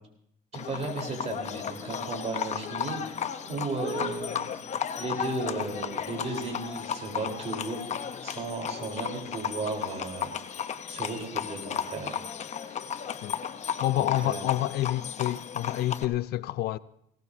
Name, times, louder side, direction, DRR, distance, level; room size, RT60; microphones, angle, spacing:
Livestock farm animals working animals, 0.5-16.0, left 8 dB, 45° left, 0.8 m, -34 dB
voice 1, 0.5-4.5 5.0-7.9 8.2-12.2 12.6-12.7 13.9-14.5, right 3 dB, 40° right, 4.2 m, -35 dB
voice 2, 13.8-16.8, left 15 dB, 70° left, 0.5 m, -28 dB
20.5 x 17.5 x 2.8 m
cardioid pair, 110°, 17 cm